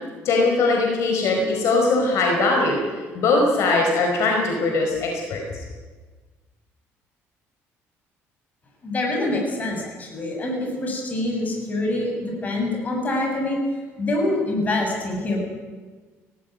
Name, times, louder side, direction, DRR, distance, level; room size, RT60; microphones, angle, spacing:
voice 1, 0.2-2.8 3.1-5.4, left 3 dB, 65° left, 1 dB, 4.7 m, -20 dB
voice 2, 8.8-13.6 14.0-15.4, left 2 dB, 30° left, 0 dB, 7.2 m, -25 dB
19.0 x 15.5 x 9.2 m, 1.4 s
cardioid pair, 125°, 5 cm